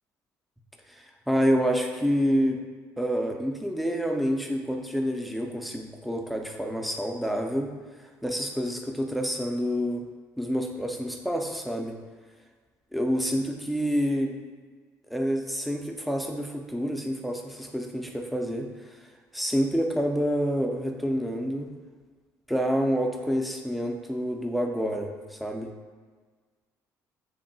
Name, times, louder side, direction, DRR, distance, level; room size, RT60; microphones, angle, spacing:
voice 1, 0.9-2.6 3.0-7.7 8.2-10.0 10.4-12.0 12.9-14.3 15.1-18.7 19.3-21.7 22.5-25.7, equal, ahead, 2 dB, 0.3 m, -28 dB
3.6 x 2.2 x 3.9 m, 1.5 s
cardioid pair, 125°, 7 cm